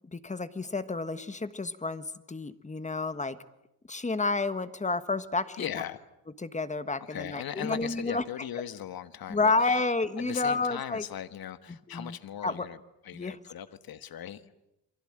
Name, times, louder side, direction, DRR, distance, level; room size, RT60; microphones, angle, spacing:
voice 1, 0.1-3.4 3.9-5.7 6.4-8.2 9.3-11.0 11.9-12.2 12.4-12.7 13.1-13.3, left 3 dB, 15° left, 12 dB, 1.3 m, -30 dB
voice 2, 5.6-6.0 7.0-9.8 10.2-12.8 13.0-14.5, left 10 dB, 50° left, 12 dB, 1.5 m, -39 dB
28.5 x 23.5 x 8.8 m, 0.86 s
cardioid pair, 140°, 45 cm